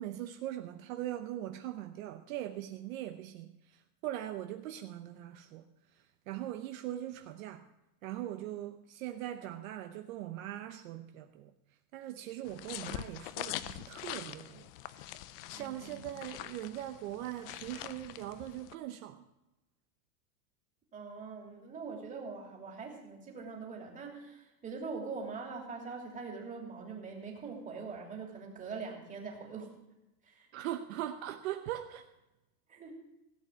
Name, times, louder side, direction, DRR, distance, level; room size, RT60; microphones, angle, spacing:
voice 1, 0.0-5.7 5.9-7.7 8.0-11.5 11.9-15.1 15.5-19.2 30.5-32.1, right 13 dB, 60° right, 6 dB, 0.9 m, -41 dB
sound 1, 12.4-18.7, left 14 dB, 40° left, 0.6 m, -44 dB
voice 2, 15.5-16.1 20.9-29.7 30.2-30.5 32.7-33.0, right 4 dB, 15° right, 0 dB, 2.9 m, -43 dB
17.0 x 8.4 x 6.2 m, 0.94 s
supercardioid pair, 155°, 47 cm